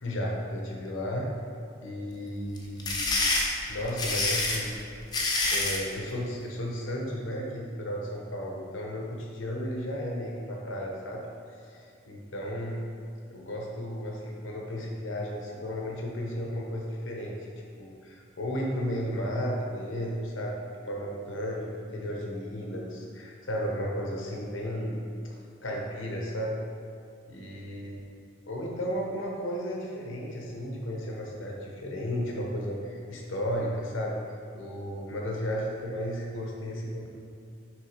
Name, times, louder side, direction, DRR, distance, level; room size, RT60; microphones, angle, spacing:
voice 1, 0.0-1.3 1.8-3.0 3.7-4.8 5.1-11.3 11.7-12.8 13.3-17.4 17.8-25.0 25.2-26.6 27.3-28.0 28.5-34.2 34.5-37.1, equal, 80° left, -2 dB, 1.0 m, -34 dB
sound 1, 2.6-5.9, left 2 dB, 20° left, 0.6 m, -27 dB
6.2 x 3.4 x 5.0 m, 2.4 s
head